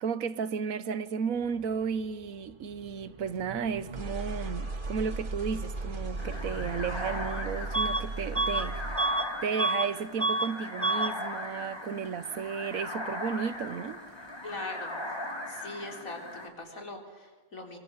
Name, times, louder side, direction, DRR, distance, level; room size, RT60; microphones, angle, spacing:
voice 1, 0.0-8.8 9.4-14.0, right 6 dB, 85° right, 1.4 m, -33 dB
sound 1, 1.3-9.2, right 2 dB, 40° right, 2.1 m, -38 dB
sound 2, 6.2-16.5, left 1 dB, 20° left, 2.9 m, -39 dB
Bus / Alarm, 7.7-8.1 8.3-9.9 10.2-10.5 10.8-11.2, right 2 dB, 10° right, 1.1 m, -28 dB
voice 2, 14.4-14.9 15.5-17.8, left 2 dB, 80° left, 4.2 m, -41 dB
25.5 x 24.0 x 7.4 m
omnidirectional pair, 1.4 m